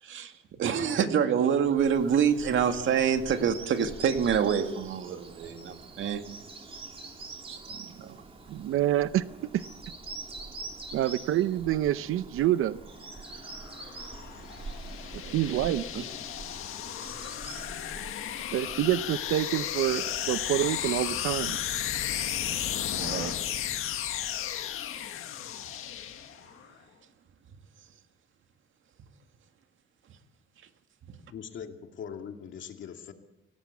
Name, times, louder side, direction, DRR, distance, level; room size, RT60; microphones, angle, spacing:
voice 1, 0.0-6.2 7.5-8.2 13.5-13.6 15.2-15.7 15.9-16.0 22.9-23.4 31.1-31.2, right 7 dB, 70° right, 7 dB, 2.1 m, -27 dB
Bird vocalization bird call bird song, 1.6-19.6, right 3 dB, 25° right, 3.3 m, -45 dB
voice 2, 8.5-9.2 9.5-9.6 10.9-12.8 15.3-15.8 18.5-21.6, right 13 dB, 90° right, 13 dB, 0.7 m, -27 dB
sound 1, 13.2-26.7, left 10 dB, 90° left, 1.8 m, -34 dB
voice 3, 31.3-33.1, left 7 dB, 65° left, 5 dB, 2.3 m, -41 dB
25.0 x 17.5 x 8.4 m, 1.0 s
cardioid pair, 135°, 21 cm